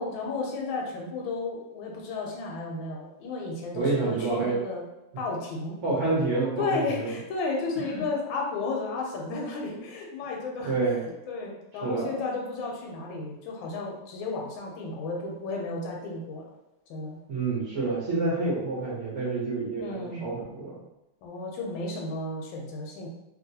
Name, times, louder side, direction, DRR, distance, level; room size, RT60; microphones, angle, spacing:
voice 1, 0.0-4.8 5.2-5.8 6.6-10.7 11.3-16.4 16.9-17.2 19.8-20.2 21.2-23.1, left 3 dB, 85° left, 0 dB, 1.4 m, -33 dB
voice 2, 3.7-4.6 5.8-7.1 7.9-8.0 10.6-11.1 11.8-12.1 17.3-20.8, right 3 dB, 55° right, -6 dB, 0.9 m, -28 dB
2.9 x 2.7 x 2.7 m, 0.93 s
omnidirectional pair, 2.1 m